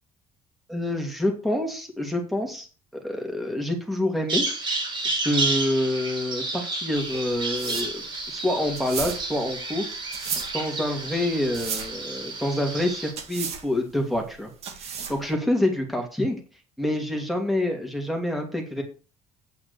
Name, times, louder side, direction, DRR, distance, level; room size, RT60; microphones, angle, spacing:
voice 1, 0.7-2.7 2.9-4.5 5.2-8.0 8.3-10.0 10.5-14.5 14.8-16.4 16.8-18.8, left 1 dB, ahead, 2 dB, 2.6 m, -27 dB
Bird vocalization bird call bird song, 4.3-13.1, right 3 dB, 40° right, 3.6 m, -31 dB
sound 1, 6.9-15.3, right 6 dB, 60° right, 1.9 m, -35 dB
8.8 x 5.8 x 7.0 m, 0.36 s
cardioid pair, 115°, 12 cm